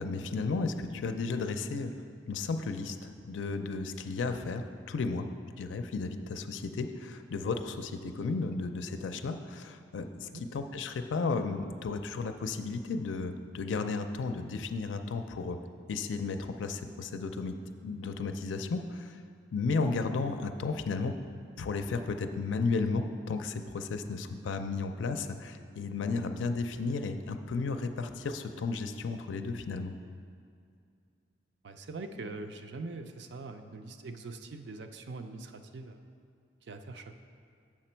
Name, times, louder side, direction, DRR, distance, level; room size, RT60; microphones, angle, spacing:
voice 1, 0.0-5.3 5.6-15.6 15.9-17.5 17.8-19.2 19.5-21.1 21.6-29.9, left 4 dB, 85° left, 7 dB, 0.4 m, -34 dB
voice 2, 31.6-36.0 36.7-37.1, right 3 dB, 70° right, 7 dB, 0.5 m, -43 dB
7.4 x 5.9 x 4.4 m, 2.3 s
head